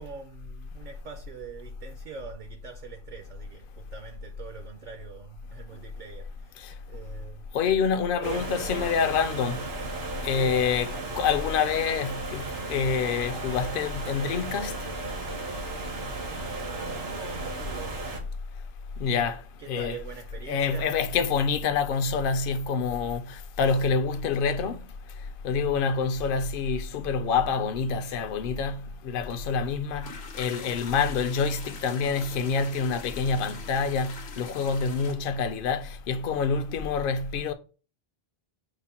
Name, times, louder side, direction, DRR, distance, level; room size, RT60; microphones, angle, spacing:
voice 1, 0.0-7.5 7.8-8.9 10.3-10.7 16.0-18.0 18.9-19.1 19.6-21.1, right 6 dB, 55° right, 0.6 m, -44 dB
voice 2, 7.5-9.6 10.2-14.8 19.0-19.4 19.7-20.0 20.5-24.8 25.4-37.5, left 5 dB, 65° left, 0.7 m, -27 dB
sound 1, 8.2-18.2, right 3 dB, 80° right, 1.3 m, -35 dB
sound 2, 30.0-35.1, left 4 dB, 85° left, 1.0 m, -43 dB
5.0 x 2.1 x 4.2 m
omnidirectional pair, 1.0 m